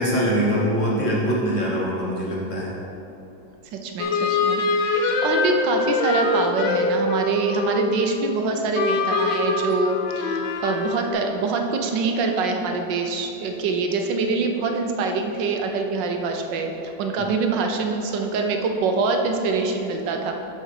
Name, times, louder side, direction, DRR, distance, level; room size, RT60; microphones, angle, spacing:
voice 1, 0.0-2.7 17.2-17.3, equal, 45° left, -4 dB, 1.5 m, -23 dB
voice 2, 3.7-20.3, right 4 dB, 80° right, 4 dB, 1.4 m, -25 dB
sound 1, 4.0-8.4 8.7-11.1, left 3 dB, 80° left, 1.5 m, -23 dB
7.7 x 4.4 x 6.6 m, 2.9 s
omnidirectional pair, 2.0 m